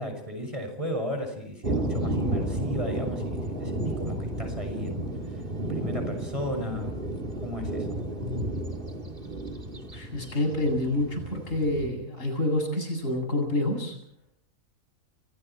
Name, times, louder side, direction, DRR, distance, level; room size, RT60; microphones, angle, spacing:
voice 1, 0.0-6.9 7.4-8.0, equal, 25° right, 5 dB, 6.3 m, -35 dB
sound 1, 1.6-11.9, right 1 dB, 40° right, 3.1 m, -32 dB
voice 2, 9.9-14.0, left 1 dB, 70° left, 4 dB, 8.6 m, -27 dB
30.0 x 25.0 x 4.5 m, 0.68 s
omnidirectional pair, 1.4 m